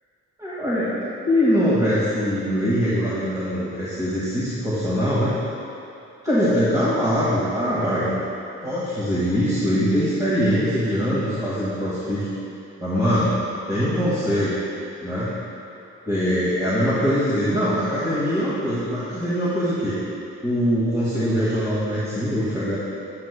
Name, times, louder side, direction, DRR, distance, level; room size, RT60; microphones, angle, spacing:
voice 1, 0.4-5.3 6.2-8.2 8.6-12.3 12.8-13.3 13.7-14.6 15.0-15.3 16.1-20.0 20.4-22.8, equal, 10° right, -10 dB, 1.9 m, -22 dB
9.7 x 9.2 x 2.2 m, 2.7 s
cardioid pair, 90°, 30 cm